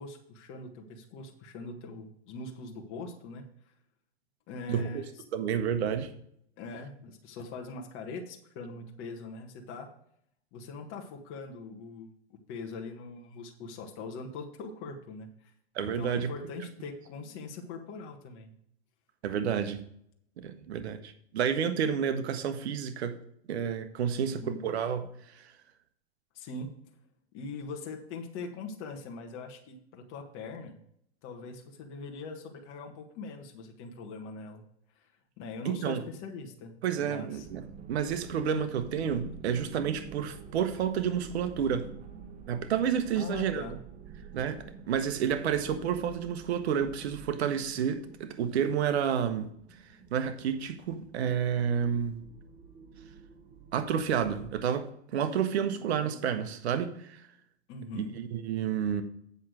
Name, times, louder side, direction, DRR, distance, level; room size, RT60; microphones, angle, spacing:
voice 1, 0.0-3.7 4.5-5.1 6.6-9.9 10.5-15.5 15.9-18.5 24.2-24.7 26.3-26.7 27.3-30.8 31.2-34.6 35.0-35.1 35.4-36.7 37.0-37.5 43.1-43.8 55.6-55.9 57.7-58.2, left 3 dB, 35° left, 1.6 m, -42 dB
voice 2, 4.7-5.0 5.3-6.1 15.7-16.3 19.2-19.9 20.4-23.2 23.5-25.5 35.6-36.0 36.8-41.9 42.5-43.7 44.3-49.5 50.1-52.2 53.7-57.2 57.9-59.0, right 8 dB, 70° right, 1.1 m, -30 dB
sound 1, 37.4-54.5, right 6 dB, 25° right, 0.9 m, -49 dB
8.2 x 6.1 x 6.4 m
hypercardioid pair, 135°, 34 cm